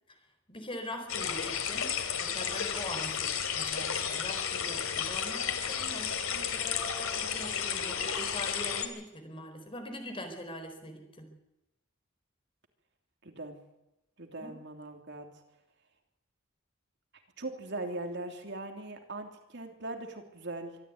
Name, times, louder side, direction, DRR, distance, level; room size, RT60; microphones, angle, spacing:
voice 1, 0.5-1.9 2.2-11.3 14.4-14.5, equal, 25° left, 6 dB, 4.5 m, -43 dB
sound 1, 1.1-8.9, left 7 dB, 80° left, 3.1 m, -33 dB
voice 2, 13.2-13.6 14.2-15.3 17.4-20.8, right 2 dB, 55° right, 4 dB, 3.1 m, -40 dB
25.0 x 13.5 x 9.5 m, 0.93 s
head